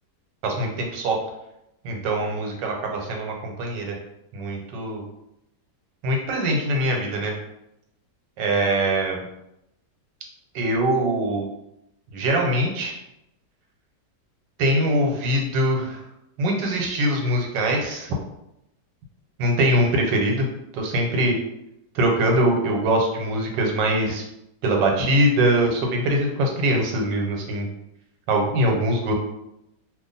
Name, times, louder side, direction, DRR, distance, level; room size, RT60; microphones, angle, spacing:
voice 1, 0.4-1.2 1.8-3.9 4.3-5.0 6.0-7.3 8.4-9.2 10.5-11.5 12.1-12.9 14.6-16.0 16.4-18.1 19.4-20.5 20.7-21.3 21.9-24.2 24.6-27.7 28.3-29.1, right 1 dB, 85° right, 1 dB, 1.4 m, -22 dB
2.7 x 2.5 x 3.9 m, 0.83 s
omnidirectional pair, 1.9 m